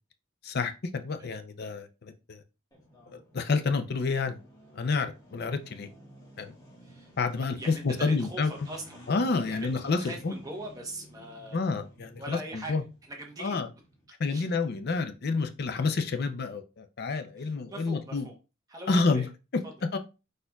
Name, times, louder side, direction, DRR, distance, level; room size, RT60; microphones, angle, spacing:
voice 1, 0.4-2.4 3.1-4.4 4.7-5.9 6.4-6.5 7.2-8.5 9.1-10.0 10.2-10.3 11.5-12.4 12.7-12.8 13.4-13.7 14.2-18.2 18.9-19.2 19.9-20.0, left 4 dB, 50° left, 0.5 m, -29 dB
sound 1, 2.7-14.0, equal, 15° left, 1.4 m, -53 dB
voice 2, 6.8-7.1 7.6-9.0 9.5-9.7 10.0-11.8 12.2-12.8 13.0-13.6 14.3-14.5 17.4-18.3 18.7-19.3 19.6-19.7, right 1 dB, 15° right, 0.9 m, -41 dB
5.0 x 4.2 x 2.3 m
head